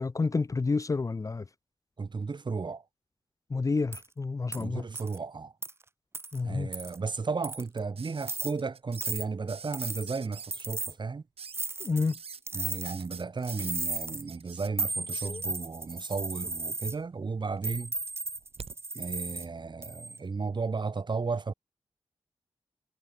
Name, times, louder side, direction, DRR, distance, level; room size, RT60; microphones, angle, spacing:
voice 1, 0.0-1.4 3.5-4.8 6.3-6.7 11.8-12.2 15.3-15.4, left 4 dB, 30° left, 0.6 m, -29 dB
voice 2, 2.0-2.8 4.6-5.5 6.4-11.2 12.5-17.9 18.9-21.5, right 4 dB, 45° right, 2.8 m, -34 dB
sound 1, 3.9-4.1 4.5-4.6 4.9-5.2 5.6-5.7 6.1-6.4 6.7-7.0 7.4-7.8 8.2-8.5 8.9-9.2 9.7-10.1 10.5-10.9 11.5-12.1 12.5-13.1 13.4-14.2 14.8-16.9 17.6-19.5 19.8-20.2, right 3 dB, 25° right, 0.6 m, -35 dB
sound 2, 8.0-9.1 9.5-10.5 11.4-11.7 12.1-12.4 12.8-14.7 15.1-15.4 16.4-17.0 17.4-18.8 20.1-20.2, right 6 dB, 70° right, 4.0 m, -45 dB
cardioid pair, 75°, 10 cm